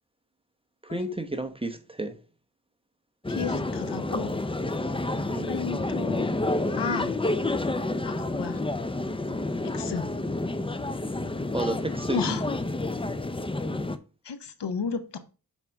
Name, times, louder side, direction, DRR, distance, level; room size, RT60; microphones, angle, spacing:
voice 1, 0.8-2.2 5.3-5.5 11.5-12.4, right 2 dB, 15° right, 0.9 m, -32 dB
sound 1, 3.2-14.0, left 2 dB, 15° left, 0.5 m, -29 dB
voice 2, 3.3-4.4 5.5-6.4 6.7-7.1 8.0-8.6 9.7-10.1 12.1-12.5 14.2-15.2, left 6 dB, 80° left, 0.9 m, -33 dB
7.3 x 5.3 x 3.4 m
wide cardioid pair, 65°, 41 cm